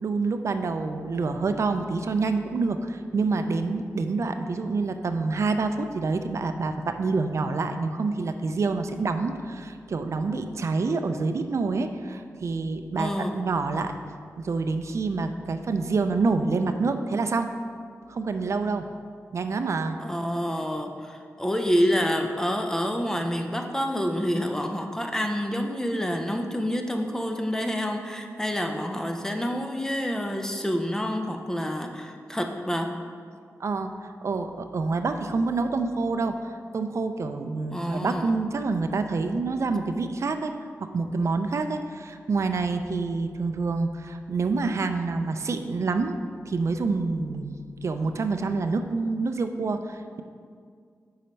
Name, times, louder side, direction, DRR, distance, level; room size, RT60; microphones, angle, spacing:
voice 1, 0.0-13.9 14.4-17.5 18.1-18.8 19.3-20.0 33.6-33.9 34.2-36.4 36.7-40.5 40.8-46.2 46.5-50.2, right 3 dB, 60° right, 8 dB, 0.4 m, -27 dB
voice 2, 13.0-13.4 20.0-32.9 37.7-38.4, equal, 10° left, 4 dB, 0.6 m, -28 dB
5.6 x 4.3 x 5.2 m, 2.1 s
cardioid pair, 65°, 6 cm